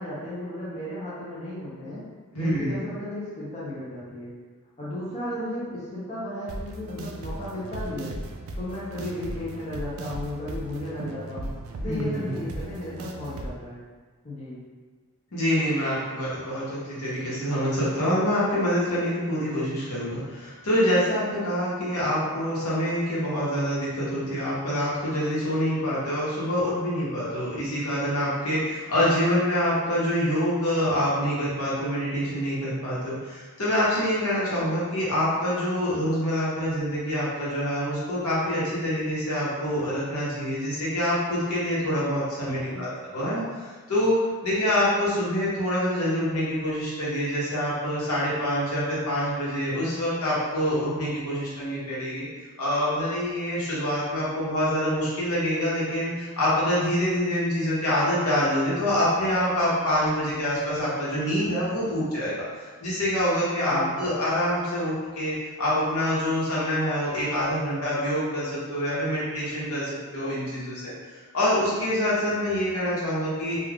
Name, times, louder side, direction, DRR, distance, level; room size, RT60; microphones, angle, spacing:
voice 1, 0.0-2.0 2.4-4.3 4.8-8.1 8.6-11.5 11.8-13.8 14.2-14.6 42.4-42.9 63.7-64.0, left 1 dB, 30° left, -9 dB, 0.7 m, -34 dB
voice 2, 2.3-2.8 11.8-12.3 15.3-44.2 44.4-52.2 52.6-70.8 71.3-73.6, equal, 85° left, -8 dB, 1.1 m, -26 dB
sound 1, 6.5-13.5, right 2 dB, 65° right, 0.3 m, -37 dB
2.4 x 2.4 x 3.4 m, 1.4 s
head